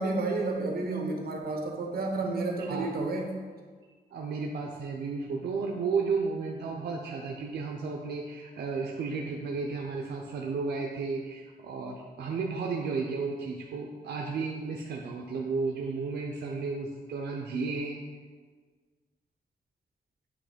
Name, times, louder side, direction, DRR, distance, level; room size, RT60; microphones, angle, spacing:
voice 1, 0.0-3.3, right 2 dB, 65° right, 2 dB, 1.1 m, -31 dB
voice 2, 4.1-18.0, right 4 dB, 85° right, 0 dB, 0.6 m, -33 dB
8.5 x 3.0 x 5.0 m, 1.5 s
wide cardioid pair, 145°, 17 cm